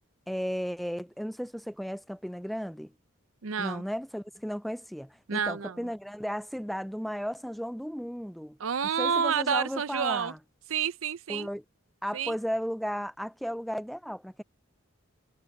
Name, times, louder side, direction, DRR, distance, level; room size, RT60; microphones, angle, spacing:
voice 1, 0.3-2.9 3.6-8.6 9.0-10.4 11.3-11.6 12.0-14.4, equal, ahead, 0.3 m, -34 dB
voice 2, 3.4-3.8 5.3-5.9 8.6-10.3 10.7-11.5 12.1-12.4, right 6 dB, 80° right, 0.7 m, -29 dB
head